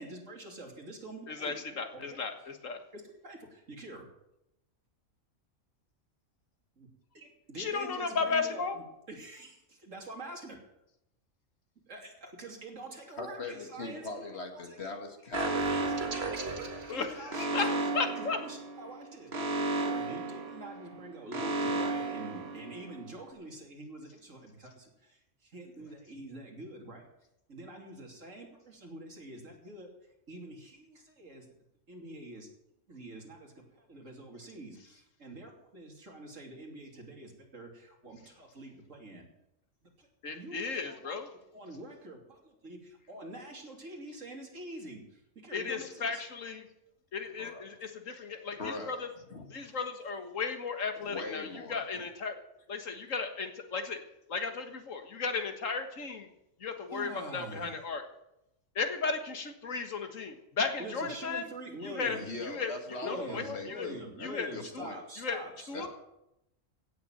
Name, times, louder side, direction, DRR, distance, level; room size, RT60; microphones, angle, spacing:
voice 1, 0.0-1.5 1.9-2.3 2.9-4.1 6.8-6.9 7.1-8.6 9.1-10.6 11.9-15.0 15.4-15.5 15.7-17.8 18.2-19.3 19.7-27.0 27.5-29.9 30.3-31.4 31.9-32.5 32.9-39.2 40.0-40.1 40.3-41.1 41.5-46.2 56.9-57.7 60.8-62.3 63.0-65.9, right 2 dB, 75° right, 1 dB, 3.3 m, -46 dB
voice 2, 1.3-2.8 7.6-8.8 16.9-18.4 40.2-41.3 45.5-46.7 47.1-49.1 49.5-52.4 52.7-54.0 54.3-56.3 56.6-58.0 58.8-61.5 61.8-62.7 63.1-63.9 64.2-64.9 65.2-65.4 65.7-65.9, left 5 dB, 80° left, 6 dB, 1.9 m, -35 dB
voice 3, 13.2-16.5 47.4-47.6 48.6-49.7 51.0-52.0 62.1-65.0 65.7-65.9, left 3 dB, 55° left, 4 dB, 2.3 m, -41 dB
Alarm, 15.3-23.1, right 2 dB, 55° right, 1.9 m, -34 dB
16.5 x 6.9 x 9.0 m, 0.86 s
omnidirectional pair, 1.3 m